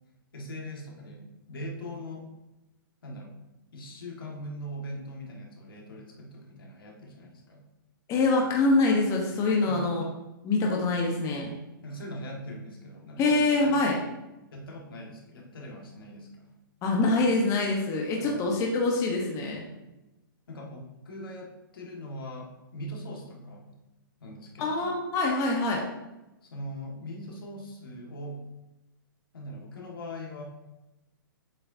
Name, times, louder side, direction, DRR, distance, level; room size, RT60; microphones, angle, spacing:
voice 1, 0.3-2.3 3.0-3.4 3.7-7.6 9.6-9.9 11.8-13.7 14.5-16.5 18.2-18.7 20.5-23.7 24.2-24.9 26.4-28.5 29.3-30.4, equal, 80° left, -1 dB, 1.8 m, -41 dB
voice 2, 8.1-10.0 10.4-11.5 13.2-14.0 16.8-19.6 24.6-25.8, left 3 dB, 30° left, 0 dB, 1.1 m, -25 dB
7.7 x 5.6 x 2.7 m, 0.99 s
hypercardioid pair, 125°, 12 cm